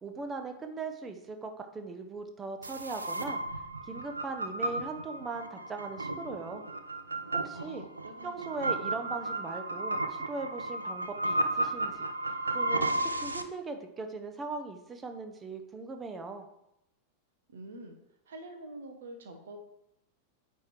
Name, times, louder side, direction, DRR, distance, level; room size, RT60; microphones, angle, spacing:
voice 1, 0.0-3.4 3.9-6.6 7.3-7.8 8.2-12.1 12.5-16.5, right 3 dB, 20° right, 6 dB, 0.9 m, -39 dB
sound 1, 2.6-13.4, right 2 dB, 80° right, 0.5 m, -33 dB
voice 2, 7.5-8.3 8.6-8.9 17.5-17.9 18.3-19.6, right 1 dB, 60° right, 5 dB, 1.2 m, -46 dB
8.9 x 3.6 x 4.6 m, 0.83 s
figure-of-eight pair, 90°, 0 cm